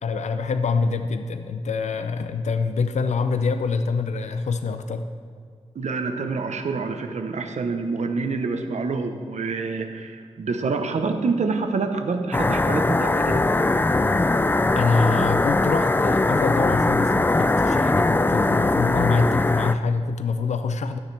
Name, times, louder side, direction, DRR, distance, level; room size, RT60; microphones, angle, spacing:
voice 1, 0.0-5.1 14.7-21.0, left 4 dB, 85° left, 8 dB, 0.5 m, -25 dB
voice 2, 5.7-13.4, right 4 dB, 85° right, 6 dB, 0.8 m, -27 dB
sound 1, 12.3-19.7, left 2 dB, 20° left, 0.3 m, -21 dB
13.0 x 9.4 x 3.3 m, 2.2 s
wide cardioid pair, 90°, 12 cm